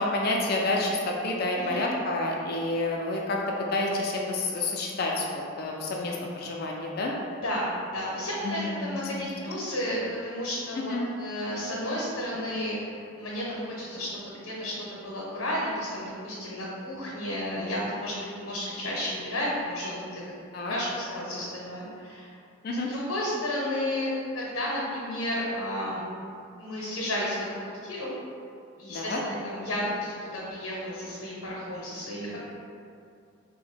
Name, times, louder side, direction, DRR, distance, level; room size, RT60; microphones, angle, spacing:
voice 1, 0.0-7.1 8.4-8.8 9.1-9.3 10.9-11.1 20.5-20.7 22.6-22.9 28.9-29.2, left 2 dB, 45° left, -1 dB, 0.3 m, -29 dB
voice 2, 1.5-1.9 7.4-7.7 7.9-20.2 20.7-22.3 22.9-26.0 26.6-27.5 27.8-28.1 28.8-32.4, left 1 dB, 90° left, -6 dB, 0.7 m, -32 dB
2.9 x 2.1 x 4.1 m, 2.5 s
head